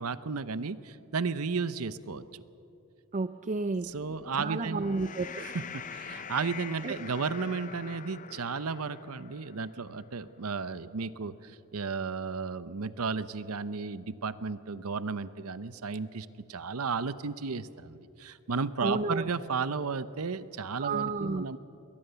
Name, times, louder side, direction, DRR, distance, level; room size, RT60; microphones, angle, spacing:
voice 1, 0.0-2.4 3.9-5.0 5.4-21.6, right 5 dB, 75° right, 15 dB, 0.8 m, -34 dB
voice 2, 3.1-3.9 4.4-5.4 6.8-6.9 18.8-19.3 20.8-21.4, right 3 dB, 35° right, 12 dB, 0.4 m, -31 dB
sound 1, 3.7-10.3, left 7 dB, 35° left, 0.6 m, -45 dB
22.0 x 19.0 x 6.9 m, 2.7 s
head